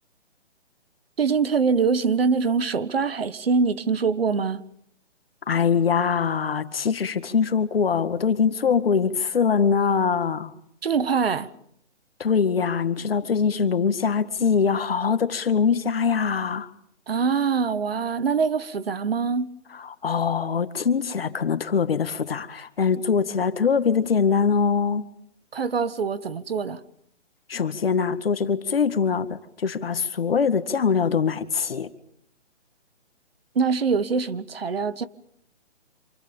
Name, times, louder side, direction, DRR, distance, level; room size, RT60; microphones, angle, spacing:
voice 1, 1.2-4.6 10.8-11.5 17.1-19.5 25.5-26.8 33.5-35.1, right 5 dB, 55° right, 1.6 m, -24 dB
voice 2, 5.5-10.5 12.2-16.7 19.8-25.1 27.5-31.9, left 6 dB, 55° left, 1.9 m, -23 dB
28.5 x 27.5 x 5.3 m
hypercardioid pair, 170°, 35 cm